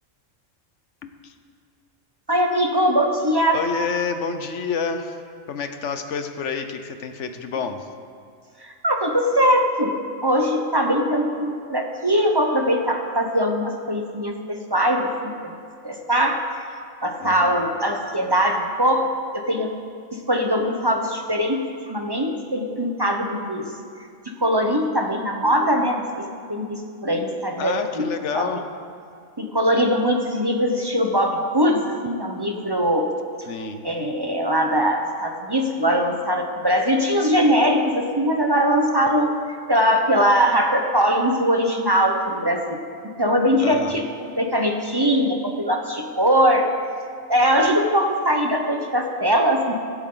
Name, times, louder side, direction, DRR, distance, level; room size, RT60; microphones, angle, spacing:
voice 1, 1.0-1.3 3.5-5.2 5.5-7.9 17.2-17.7 27.6-28.7 33.5-33.8 43.6-44.0, left 5 dB, 65° left, 8 dB, 1.1 m, -28 dB
voice 2, 2.3-3.6 8.6-10.0 10.2-15.1 15.8-16.4 17.0-19.7 20.3-21.6 21.9-23.7 24.4-28.1 28.3-28.5 29.4-33.1 33.8-39.3 39.7-42.8 43.2-44.1 44.4-46.7 47.3-49.7, equal, 20° right, 2 dB, 0.8 m, -21 dB
24.0 x 8.1 x 3.9 m, 2.3 s
omnidirectional pair, 1.3 m